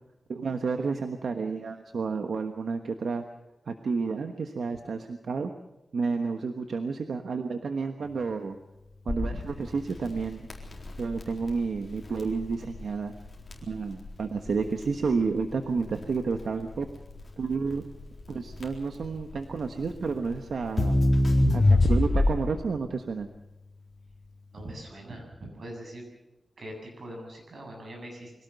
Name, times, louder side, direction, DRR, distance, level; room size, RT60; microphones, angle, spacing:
voice 1, 0.3-3.2 3.7-5.5 5.9-8.6 9.0-10.4 11.0-13.1 13.7-16.9 17.4-17.8 18.3-21.0 21.5-23.3, right 4 dB, 80° right, 6 dB, 1.3 m, -30 dB
Crackle, 9.1-22.7, left 1 dB, 35° left, 4.2 m, -27 dB
voice 2, 24.5-26.0 26.6-28.3, right 1 dB, 55° right, 1 dB, 7.8 m, -42 dB
24.0 x 17.5 x 6.8 m, 0.97 s
wide cardioid pair, 135°, 0 cm